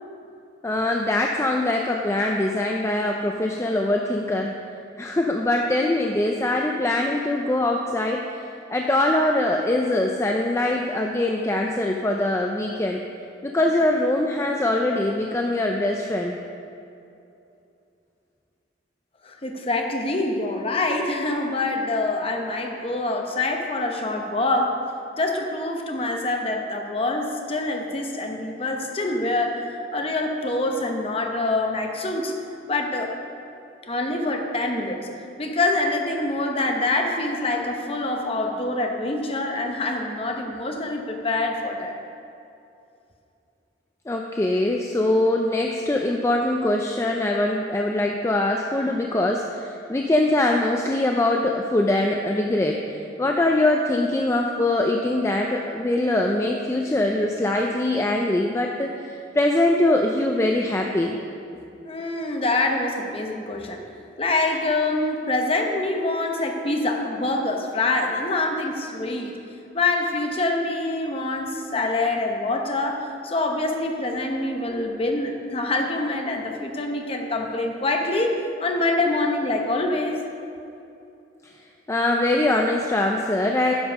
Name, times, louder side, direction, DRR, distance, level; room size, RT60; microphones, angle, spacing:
voice 1, 0.6-4.6 5.0-8.2 8.7-13.0 13.4-16.4 44.1-61.2 81.9-83.7, left 1 dB, 15° left, 1 dB, 0.4 m, -23 dB
voice 2, 19.2-24.8 25.2-32.3 32.7-33.1 33.8-35.1 35.4-41.9 61.5-63.8 64.2-69.3 69.7-80.2, left 2 dB, 30° left, 2 dB, 0.8 m, -25 dB
10.0 x 5.4 x 6.0 m, 2.7 s
head